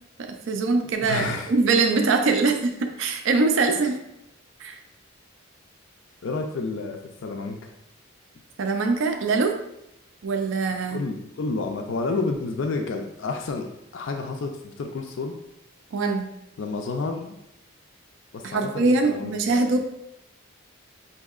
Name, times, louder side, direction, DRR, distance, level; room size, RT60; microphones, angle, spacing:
voice 1, 0.2-4.0 4.6-4.8 8.6-9.6 10.2-11.0 15.9-16.3 18.4-19.8, right 3 dB, 60° right, 4 dB, 0.4 m, -23 dB
voice 2, 1.0-1.5 3.7-3.9 6.2-7.7 10.9-13.7 13.9-15.3 16.6-17.4 18.3-19.6, left 3 dB, 60° left, 3 dB, 0.4 m, -30 dB
5.9 x 2.7 x 2.3 m, 0.83 s
head